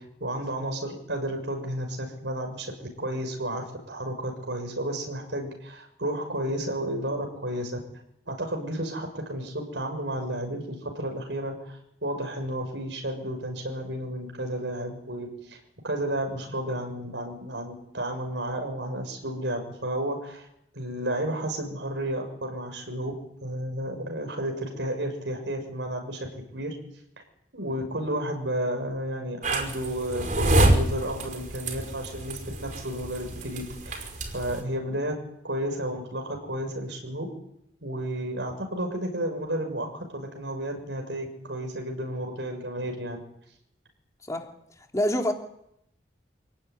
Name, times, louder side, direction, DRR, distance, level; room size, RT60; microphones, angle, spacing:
voice 1, 0.2-7.8 8.3-15.6 15.8-20.5 20.7-23.1 23.4-26.8 27.5-35.1 35.4-37.3 37.8-43.2, right 1 dB, 90° right, 4 dB, 6.9 m, -32 dB
sound 1, 29.4-34.6, right 1 dB, 45° right, 5.4 m, -27 dB
voice 2, 44.9-45.3, left 1 dB, 20° left, 2 dB, 3.2 m, -25 dB
27.5 x 18.5 x 9.9 m, 0.76 s
head